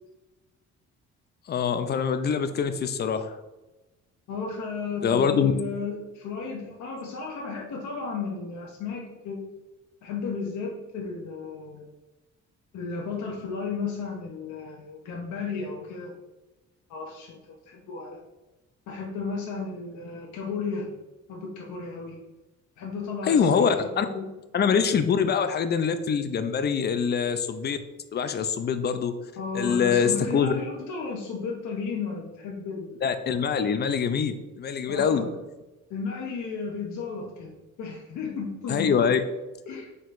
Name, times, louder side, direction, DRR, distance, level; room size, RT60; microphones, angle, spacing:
voice 1, 1.5-3.4 5.0-5.5 23.3-24.1 24.5-27.8 28.1-29.1 29.5-30.5 33.0-35.2 38.7-39.2, left 6 dB, 35° left, 10 dB, 0.4 m, -24 dB
voice 2, 4.3-9.4 10.0-11.9 12.7-16.1 16.9-18.2 18.9-20.9 21.3-22.2 22.8-23.7 24.0-24.3 29.4-33.0 34.9-35.4 35.9-39.2 39.7-39.9, left 4 dB, 75° left, -1 dB, 0.7 m, -34 dB
4.4 x 3.8 x 2.5 m, 1.1 s
cardioid pair, 90°, 30 cm